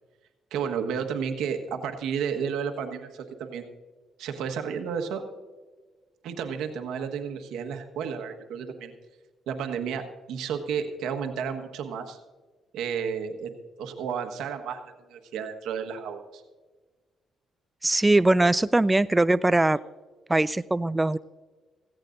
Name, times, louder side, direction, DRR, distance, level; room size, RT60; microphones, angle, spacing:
voice 1, 0.5-3.7 4.2-5.2 6.2-8.9 9.5-12.2 12.7-13.5 13.8-14.8 15.1-16.4, right 7 dB, 85° right, 5 dB, 1.4 m, -32 dB
voice 2, 17.8-19.8 20.3-21.2, right 2 dB, 15° right, 16 dB, 0.3 m, -21 dB
16.5 x 16.0 x 2.6 m, 1.3 s
cardioid pair, 90°, 0 cm